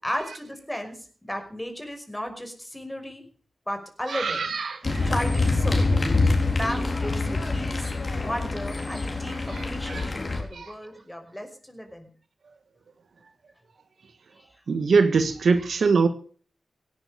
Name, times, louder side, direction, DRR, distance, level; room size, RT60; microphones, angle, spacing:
voice 1, 0.0-3.2 3.7-4.5 5.1-5.9 6.5-7.9 8.1-12.1 14.3-14.5, equal, 10° left, 6 dB, 5.5 m, -34 dB
voice 2, 4.1-5.1 6.4-6.5 9.5-10.1 10.5-10.7 14.7-16.1, right 4 dB, 75° right, 10 dB, 1.5 m, -23 dB
sound 1, 4.8-10.4, left 3 dB, 50° left, 4.1 m, -25 dB
17.5 x 10.0 x 6.8 m, 0.43 s
cardioid pair, 50°, 0 cm